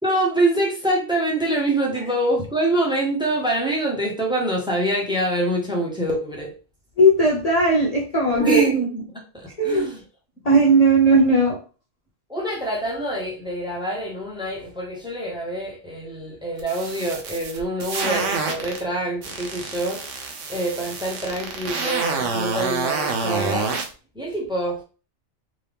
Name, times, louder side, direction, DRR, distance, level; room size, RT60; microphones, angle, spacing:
voice 1, 0.0-6.5 8.3-10.0 12.3-20.0 20.5-23.7 24.1-24.8, right 1 dB, 5° right, -2 dB, 1.1 m, -25 dB
voice 2, 7.0-8.6 9.6-9.9 10.5-11.6, right 1 dB, 40° left, -4 dB, 0.7 m, -17 dB
sound 1, 16.6-18.8 19.2-23.9, right 4 dB, 90° right, 1.1 m, -27 dB
3.7 x 2.8 x 3.4 m, 0.35 s
omnidirectional pair, 1.2 m